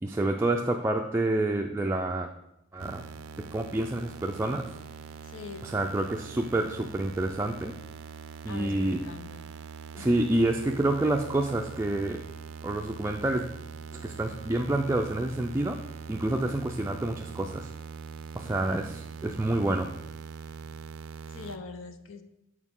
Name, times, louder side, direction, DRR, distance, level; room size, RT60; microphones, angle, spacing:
voice 1, 0.0-2.3 2.7-3.0 3.4-4.7 5.6-7.7 8.4-9.0 9.9-12.2 12.6-13.5 13.9-15.8 16.1-17.7 18.4-19.9, right 1 dB, 15° right, 2 dB, 0.3 m, -28 dB
sound 1, 2.8-21.6, right 6 dB, 75° right, 0.4 m, -43 dB
voice 2, 5.2-5.7 8.5-9.4 10.0-10.2 18.4-18.6 21.3-22.2, left 5 dB, 75° left, 8 dB, 0.6 m, -43 dB
8.2 x 4.7 x 3.7 m, 0.84 s
head